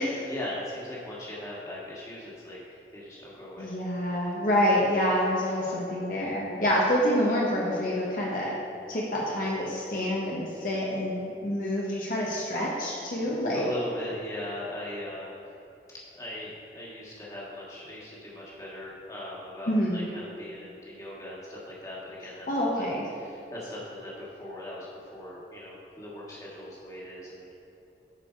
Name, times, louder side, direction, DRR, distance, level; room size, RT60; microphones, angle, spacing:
voice 1, 0.2-3.7 13.0-15.4 16.1-22.5 22.8-27.5, left 1 dB, 20° left, -6 dB, 1.8 m, -40 dB
voice 2, 3.6-8.5 8.9-13.7 19.7-20.1 22.5-23.0, equal, 50° left, -4 dB, 1.1 m, -27 dB
11.5 x 4.9 x 4.6 m, 2.9 s
head